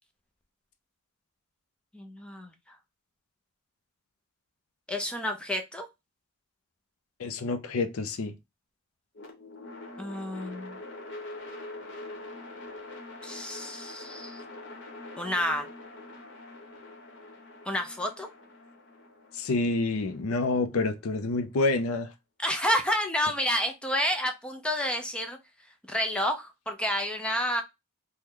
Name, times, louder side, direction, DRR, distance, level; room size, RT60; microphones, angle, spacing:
voice 1, 1.9-2.8 4.9-5.9 10.0-10.8 13.2-14.4 15.2-15.7 17.7-18.3 22.4-25.4 25.9-27.6, equal, 5° left, 0.4 m, -30 dB
voice 2, 7.2-8.3 19.3-22.1, left 3 dB, 85° left, 0.5 m, -28 dB
sound 1, 9.1-21.3, left 2 dB, 55° left, 1.0 m, -44 dB
3.0 x 2.2 x 3.5 m
head